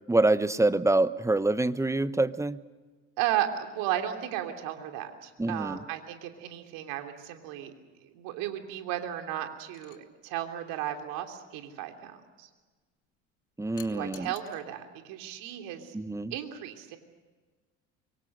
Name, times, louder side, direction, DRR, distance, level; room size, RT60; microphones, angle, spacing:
voice 1, 0.1-2.6 5.4-5.8 13.6-14.3 15.9-16.3, right 2 dB, 10° right, 15 dB, 1.0 m, -26 dB
voice 2, 3.2-7.7 8.0-12.5 13.9-15.9 16.3-17.0, right 11 dB, 65° right, 5 dB, 3.2 m, -34 dB
sound 1, 9.7-10.0 13.8-14.6 16.0-16.2, left 14 dB, 60° left, 2.1 m, -51 dB
25.0 x 24.0 x 6.6 m, 1.4 s
hypercardioid pair, 70°, 36 cm